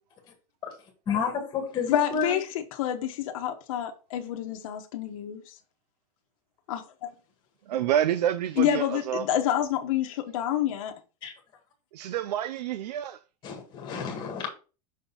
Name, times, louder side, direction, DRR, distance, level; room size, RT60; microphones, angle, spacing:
voice 1, 1.1-2.3 11.2-11.3 13.4-14.5, left 6 dB, 20° left, 1.9 m, -30 dB
voice 2, 1.9-5.5 6.7-7.1 8.6-10.9, left 11 dB, 55° left, 1.2 m, -28 dB
voice 3, 7.7-9.2 11.9-13.2, right 10 dB, 85° right, 0.5 m, -28 dB
6.3 x 4.0 x 4.1 m
supercardioid pair, 165°, 20 cm